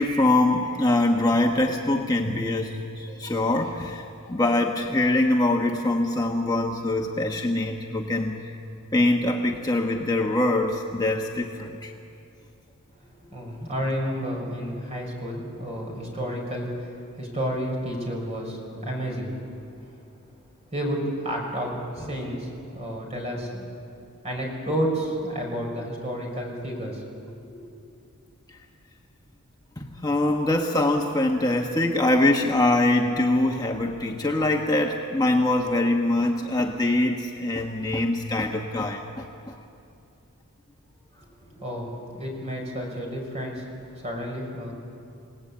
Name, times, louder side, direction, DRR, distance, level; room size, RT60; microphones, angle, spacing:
voice 1, 0.0-8.5 8.9-11.9 29.8-39.5, left 2 dB, 15° left, 1 dB, 1.1 m, -23 dB
voice 2, 13.3-19.3 20.7-23.7 24.2-27.6 41.2-44.7, equal, 30° right, 0 dB, 5.5 m, -31 dB
28.5 x 18.5 x 8.6 m, 2.6 s
head